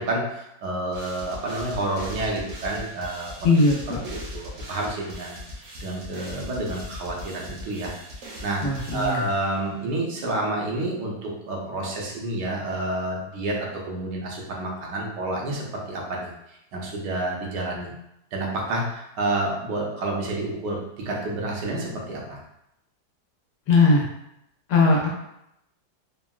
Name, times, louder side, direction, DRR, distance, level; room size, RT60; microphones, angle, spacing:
voice 1, 0.0-3.3 4.0-8.6 8.9-16.3 16.7-17.9 18.3-22.4, right 2 dB, 80° right, -2 dB, 1.3 m, -29 dB
sound 1, 0.9-9.7, left 1 dB, 60° right, 1.0 m, -40 dB
voice 2, 3.4-4.0 8.6-9.2 23.7-24.0 24.7-25.1, left 3 dB, 75° left, -2 dB, 1.3 m, -19 dB
3.6 x 2.1 x 2.2 m, 0.81 s
omnidirectional pair, 1.8 m